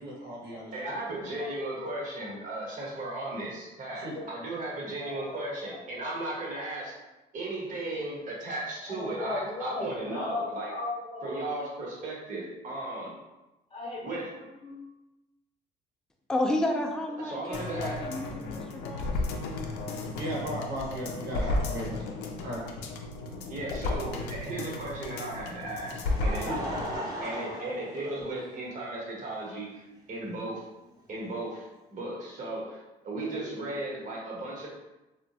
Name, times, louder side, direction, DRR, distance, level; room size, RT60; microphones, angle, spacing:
voice 1, 0.0-0.7 4.0-4.1 20.2-22.9 26.4-26.6, equal, 80° right, -5 dB, 1.0 m, -36 dB
voice 2, 0.7-7.0 7.3-10.7 11.2-13.1 14.0-14.3 17.2-18.0 23.5-26.5 27.2-30.6 31.1-32.8 33.0-34.7, right 2 dB, 50° right, -4 dB, 1.0 m, -36 dB
voice 3, 5.0-6.3 7.9-8.0 8.9-11.5 13.7-14.8 33.3-33.5, left 3 dB, 35° left, -3 dB, 0.8 m, -37 dB
voice 4, 16.3-19.1, left 1 dB, 5° left, 1 dB, 0.3 m, -31 dB
sound 1, 17.5-27.0 27.3-27.4, left 2 dB, 90° left, 0.4 m, -34 dB
Laughter, 25.5-28.7 29.6-29.7 31.1-31.2, equal, 20° right, 0.7 m, -37 dB
3.0 x 2.2 x 2.7 m, 1.0 s
cardioid pair, 110°, 17 cm